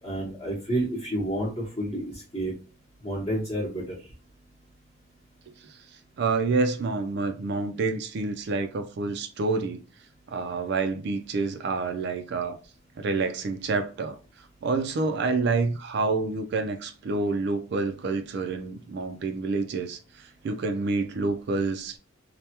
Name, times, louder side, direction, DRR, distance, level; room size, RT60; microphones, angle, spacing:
voice 1, 0.0-2.5 3.0-4.1, right 1 dB, 25° left, 0.8 m, -30 dB
voice 2, 6.2-9.8 10.3-12.6 13.0-14.2 14.6-22.0, right 3 dB, 55° right, 0.3 m, -28 dB
3.2 x 2.1 x 2.8 m
head